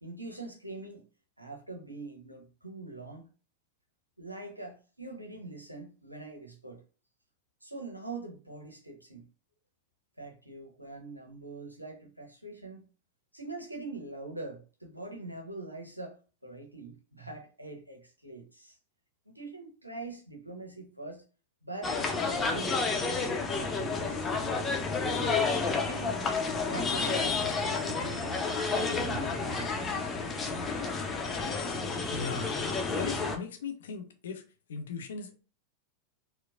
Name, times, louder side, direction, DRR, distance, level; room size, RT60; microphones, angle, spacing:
voice 1, 0.0-1.0 1.4-3.3 4.2-6.8 7.6-9.2 10.2-12.8 13.3-18.8 19.3-21.2 21.6-22.8 23.5-26.2 26.7-28.4 28.8-30.1, right 2 dB, 85° right, 0.8 m, -43 dB
sound 1, 21.8-33.4, left 4 dB, 20° left, 0.7 m, -30 dB
voice 2, 32.1-32.5 33.0-34.4 34.7-35.3, left 6 dB, 60° left, 0.7 m, -38 dB
4.4 x 2.2 x 2.5 m
figure-of-eight pair, 90°, 0 cm